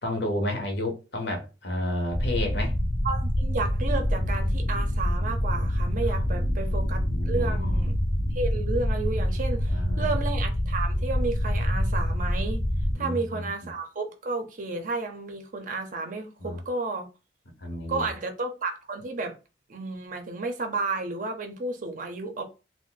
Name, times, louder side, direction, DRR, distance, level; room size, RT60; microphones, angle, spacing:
voice 1, 0.0-2.7 6.0-7.8 9.7-10.1 12.9-13.5 16.4-16.6 17.6-18.1, left 1 dB, 65° left, 0.8 m, -32 dB
sound 1, 2.1-12.9, equal, 30° left, 0.4 m, -26 dB
voice 2, 3.0-8.0 8.3-12.6 13.0-17.1 17.9-19.4 19.7-22.4, right 3 dB, 45° right, 0.6 m, -32 dB
2.5 x 2.0 x 3.7 m
head